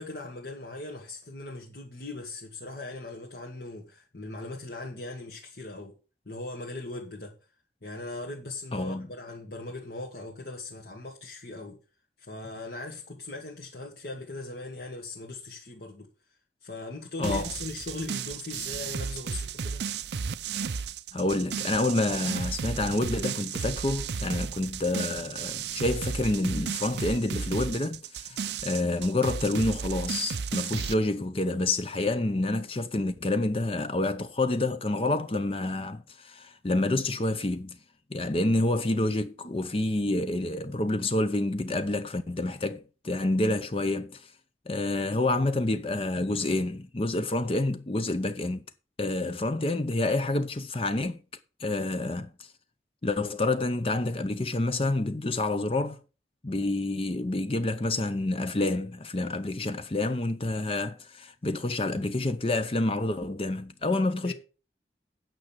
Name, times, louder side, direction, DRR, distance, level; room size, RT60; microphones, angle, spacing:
voice 1, 0.0-6.0 6.3-7.3 7.8-11.8 12.2-16.1 16.6-19.9 39.4-39.6 64.2-64.3, left 2 dB, 60° left, 1.9 m, -39 dB
voice 2, 8.7-9.1 17.2-17.5 21.1-37.8 38.1-44.3 44.7-48.6 49.0-51.2 51.6-52.3 53.0-56.0 56.4-64.3, left 2 dB, 30° left, 0.6 m, -28 dB
sound 1, 17.2-30.9, right 6 dB, 75° right, 0.6 m, -34 dB
9.2 x 6.0 x 7.3 m
head